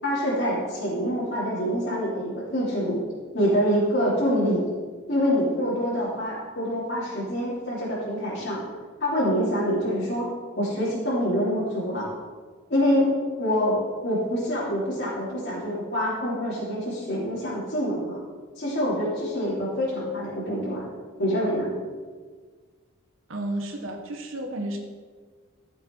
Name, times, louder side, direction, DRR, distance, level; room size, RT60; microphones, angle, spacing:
voice 1, 0.0-3.0 3.3-4.6 5.1-8.6 9.0-10.3 10.5-12.1 12.7-13.1 13.4-13.8 14.0-18.2 18.6-20.9 21.2-21.7, equal, 55° left, -9 dB, 3.5 m, -26 dB
voice 2, 23.3-24.8, right 1 dB, 70° right, 3 dB, 1.4 m, -32 dB
14.0 x 7.2 x 4.8 m, 1.5 s
head